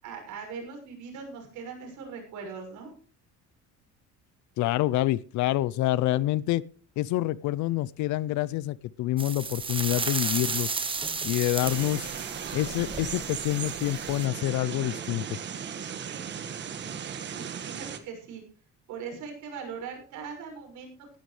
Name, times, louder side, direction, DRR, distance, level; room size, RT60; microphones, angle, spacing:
voice 1, 0.0-2.9 17.3-18.4 18.9-21.2, right 5 dB, 80° right, 2 dB, 6.5 m, -40 dB
voice 2, 4.6-6.6 7.0-10.7 11.2-12.1 12.5-15.4, left 15 dB, 75° left, 21 dB, 0.6 m, -27 dB
sound 1, 9.2-14.2, right 4 dB, 15° right, 1.3 m, -33 dB
sound 2, 11.6-18.0, right 7 dB, 40° right, 1.5 m, -37 dB
18.5 x 11.5 x 3.3 m, 0.38 s
cardioid pair, 175°, 30 cm